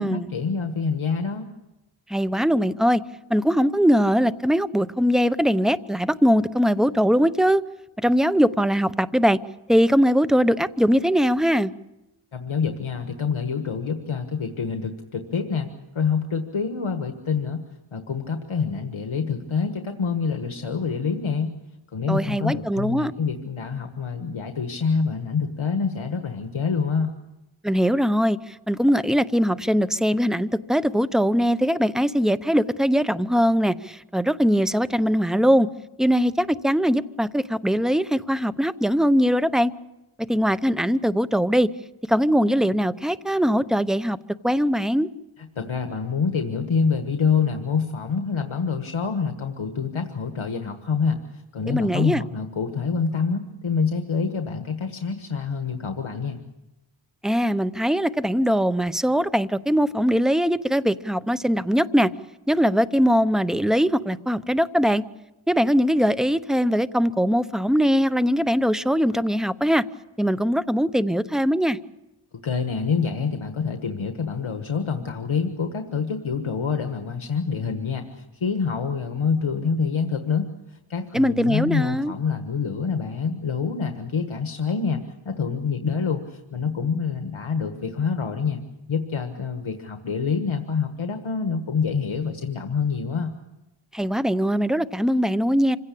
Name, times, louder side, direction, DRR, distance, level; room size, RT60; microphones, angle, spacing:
voice 1, 0.0-1.5 12.3-15.7 15.9-17.6 17.9-21.5 21.9-27.1 45.5-56.4 72.4-80.4 80.7-88.6 88.9-93.3, left 5 dB, 75° left, 6 dB, 1.5 m, -26 dB
voice 2, 2.1-3.0 3.3-7.6 8.0-9.4 9.7-11.7 22.1-23.1 27.6-35.7 36.0-39.7 40.3-41.7 42.1-44.2 44.4-45.1 51.7-52.2 57.2-62.1 62.5-65.0 65.5-69.8 70.2-71.8 81.1-82.1 93.9-95.8, equal, ahead, 14 dB, 0.7 m, -21 dB
26.5 x 16.5 x 8.5 m, 0.99 s
wide cardioid pair, 60°, 49 cm